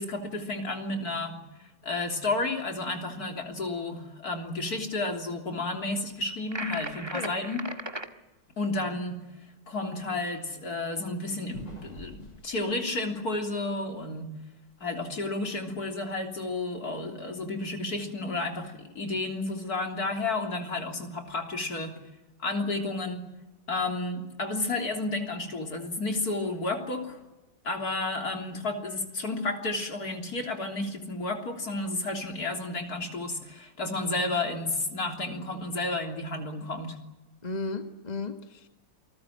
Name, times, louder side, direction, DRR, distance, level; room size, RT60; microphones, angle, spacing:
voice 1, 0.0-1.4 1.8-7.7 8.6-9.2 9.7-14.3 14.8-22.0 22.4-23.3 23.7-27.2 27.6-37.0, left 2 dB, 45° left, 4 dB, 3.8 m, -32 dB
sound 1, 6.5-8.1, right 2 dB, 15° right, 1.3 m, -36 dB
sound 2, 8.3-8.4 8.8-8.9 11.2-13.6 14.0-14.1 14.5-14.9, right 1 dB, 80° left, 8.4 m, -46 dB
voice 2, 37.4-38.7, left 3 dB, 20° left, 6 dB, 1.5 m, -34 dB
28.5 x 20.0 x 9.2 m, 1.0 s
omnidirectional pair, 2.3 m